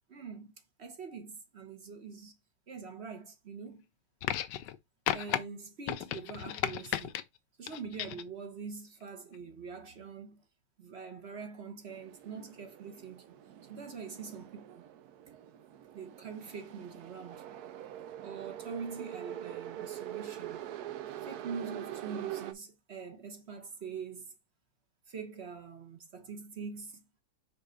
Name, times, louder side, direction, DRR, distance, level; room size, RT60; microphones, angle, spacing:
voice 1, 0.1-0.5 0.8-2.4 2.7-3.8 5.1-7.1 7.6-10.4 10.8-13.3 13.7-14.8 15.9-17.5 18.2-20.6 21.2-24.3 25.1-27.0, right 5 dB, 40° right, 1.1 m, -44 dB
sound 1, 4.2-4.8 5.1-5.4 5.9-7.2 7.7-8.3 9.3-9.4, left 12 dB, 70° left, 1.2 m, -34 dB
sound 2, 11.9-22.5, right 12 dB, 65° right, 1.0 m, -44 dB
5.7 x 3.8 x 5.0 m
omnidirectional pair, 2.1 m